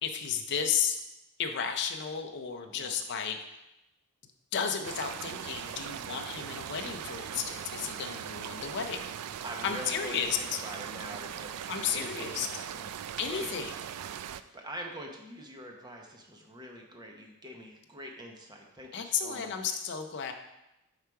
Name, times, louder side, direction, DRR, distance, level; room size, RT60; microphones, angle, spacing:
voice 1, 0.0-1.0 1.4-3.4 4.5-9.1 9.6-10.4 11.7-12.6 13.2-13.7 18.9-20.3, left 7 dB, 50° left, 5 dB, 0.5 m, -33 dB
voice 2, 2.7-3.0 8.0-8.3 9.4-11.6 11.9-12.9 13.3-19.7, right 1 dB, 20° right, 1 dB, 0.9 m, -45 dB
sound 1, 4.8-14.4, right 9 dB, 90° right, 0.3 m, -40 dB
5.6 x 4.9 x 4.6 m, 0.90 s
head